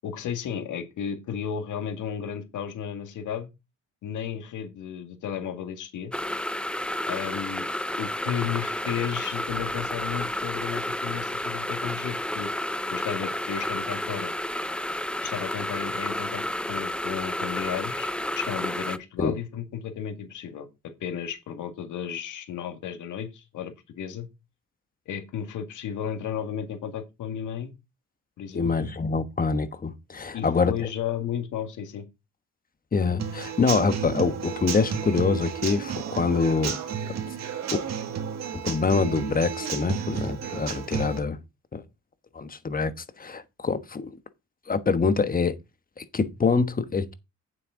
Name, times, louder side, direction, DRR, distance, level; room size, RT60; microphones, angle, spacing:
voice 1, 0.0-3.5 4.0-6.1 7.1-7.7 8.0-12.5 12.9-14.3 15.2-18.1 18.4-20.7 21.0-24.3 25.1-27.7 28.4-28.7 30.3-32.1, left 8 dB, 80° left, 2.1 m, -33 dB
sound 1, 6.1-19.0, left 1 dB, 5° left, 0.6 m, -31 dB
voice 2, 28.5-30.9 32.9-36.8 38.5-41.4 41.7-41.8 42.3-44.1 44.7-45.5 46.0-47.1, left 4 dB, 30° left, 1.3 m, -25 dB
Human voice / Acoustic guitar / Drum, 33.2-41.2, right 7 dB, 60° right, 2.1 m, -32 dB
9.1 x 7.5 x 3.8 m
cardioid pair, 90°, 30 cm